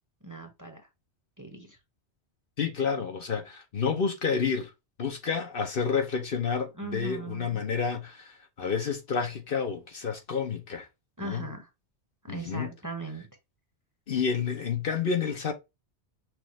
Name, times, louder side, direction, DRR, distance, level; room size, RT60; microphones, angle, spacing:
voice 1, 0.2-0.8 1.4-1.8 6.8-7.6 11.2-11.7 12.2-13.3, right 2 dB, 20° right, 0.9 m, -39 dB
voice 2, 2.6-4.7 5.0-10.9 11.2-11.5 12.3-12.7 14.1-15.5, left 6 dB, 55° left, 1.0 m, -29 dB
6.3 x 2.5 x 3.1 m
omnidirectional pair, 1.2 m